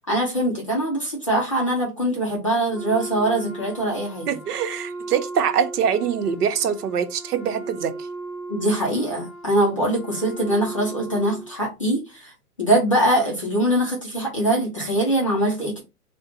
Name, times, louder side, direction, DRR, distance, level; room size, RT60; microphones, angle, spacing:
voice 1, 0.1-4.3 8.5-12.3 12.6-15.8, right 1 dB, 25° left, 0.4 m, -22 dB
Wind instrument woodwind instrument, 2.7-11.5, right 3 dB, ahead, 2.0 m, -37 dB
voice 2, 4.3-7.9, right 8 dB, 75° right, 0.7 m, -24 dB
4.0 x 2.2 x 2.6 m
hypercardioid pair, 160°, 47 cm